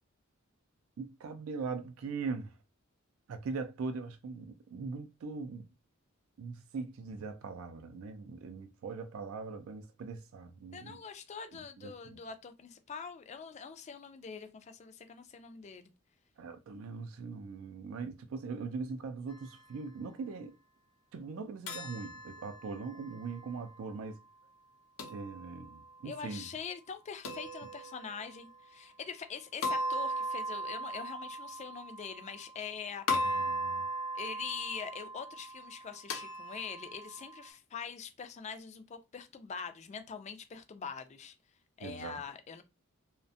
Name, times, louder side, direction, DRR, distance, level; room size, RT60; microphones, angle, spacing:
voice 1, 1.0-2.5 3.3-5.6 6.4-11.0 11.8-12.2 16.4-20.5 21.1-24.2 25.1-26.4 33.2-33.9 41.8-42.2, right 4 dB, 80° right, 0.4 m, -41 dB
voice 2, 10.7-15.9 26.0-33.5 34.1-41.3 41.8-42.6, left 6 dB, 35° left, 0.3 m, -44 dB
sound 1, 21.7-23.8 25.0-26.0 27.2-28.4 29.6-32.7 33.1-37.5, equal, 80° left, 0.6 m, -38 dB
2.4 x 2.1 x 2.6 m
head